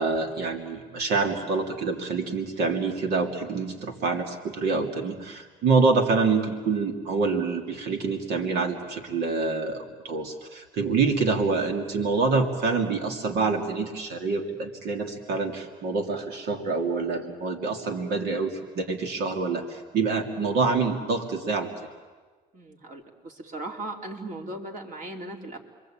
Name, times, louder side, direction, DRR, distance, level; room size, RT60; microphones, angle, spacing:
voice 1, 0.0-21.7, right 4 dB, 75° right, 4 dB, 2.7 m, -26 dB
voice 2, 22.5-25.6, right 2 dB, 50° right, 2 dB, 3.6 m, -38 dB
29.5 x 22.5 x 8.8 m, 1.4 s
cardioid pair, 110°, 17 cm